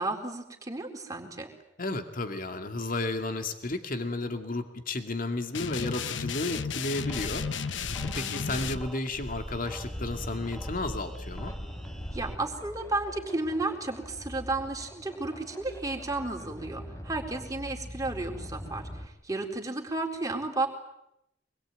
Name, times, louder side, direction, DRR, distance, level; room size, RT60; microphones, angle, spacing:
voice 1, 0.0-1.5 8.1-8.7 12.1-20.7, right 2 dB, 20° right, 2 dB, 4.0 m, -33 dB
voice 2, 1.8-7.4 8.0-11.5, left 2 dB, 50° left, 7 dB, 2.4 m, -33 dB
sound 1, 5.5-8.8, left 6 dB, 90° left, 1.0 m, -33 dB
sound 2, 7.0-12.3, equal, ahead, 1.4 m, -41 dB
sound 3, 9.5-19.1, equal, 20° left, 3.2 m, -43 dB
25.5 x 22.0 x 9.2 m, 0.81 s
head